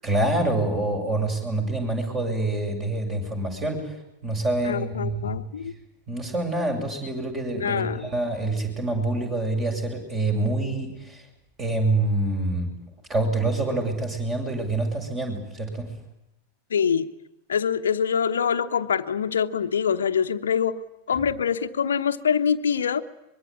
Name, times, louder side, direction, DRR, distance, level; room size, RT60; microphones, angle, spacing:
voice 1, 0.0-3.9 4.2-5.4 6.1-11.2 11.6-12.7 13.1-15.9, right 2 dB, 25° right, 4 dB, 7.5 m, -26 dB
voice 2, 4.6-5.7 7.5-8.1 16.7-17.1 17.5-20.8 21.1-23.0, left 7 dB, 65° left, 8 dB, 1.1 m, -24 dB
24.0 x 22.5 x 9.9 m, 0.86 s
figure-of-eight pair, 90°, 0 cm